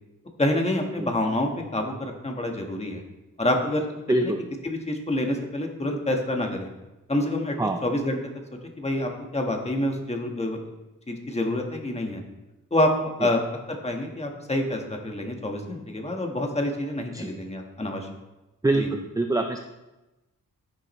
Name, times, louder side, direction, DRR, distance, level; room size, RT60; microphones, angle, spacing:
voice 1, 0.4-3.0 3.4-3.9 4.2-4.3 4.6-6.7 7.1-8.2 8.8-10.6 11.1-12.2 12.7-12.9 13.2-13.4 13.7-18.1 18.7-18.9, left 1 dB, 20° left, 2 dB, 1.4 m, -27 dB
voice 2, 4.1-4.4 7.6-7.8 17.1-17.3 18.6-19.6, right 2 dB, 10° right, 4 dB, 0.5 m, -24 dB
11.0 x 10.5 x 3.2 m, 1.0 s
wide cardioid pair, 140°, 34 cm